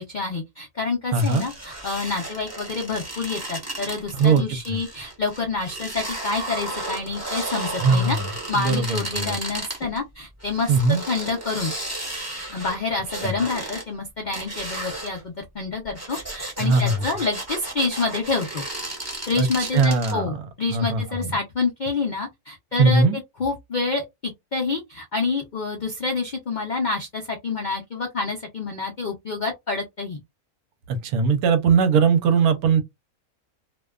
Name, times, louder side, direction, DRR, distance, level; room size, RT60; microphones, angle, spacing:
voice 1, 0.0-8.2 8.5-10.7 11.1-11.7 12.5-18.6 19.3-23.0 23.4-30.2, left 4 dB, 90° left, 0.4 m, -28 dB
sound 1, 1.1-10.0 10.4-13.8 14.3-15.2 15.8-20.1, right 2 dB, 15° right, 0.8 m, -34 dB
voice 2, 1.1-1.5 4.1-4.8 7.8-8.3 8.5-9.4 10.7-11.0 13.2-13.4 16.6-17.0 19.4-20.4 20.7-21.4 22.8-23.2 30.9-32.8, right 4 dB, 85° right, 1.1 m, -20 dB
2.5 x 2.2 x 2.3 m
omnidirectional pair, 1.6 m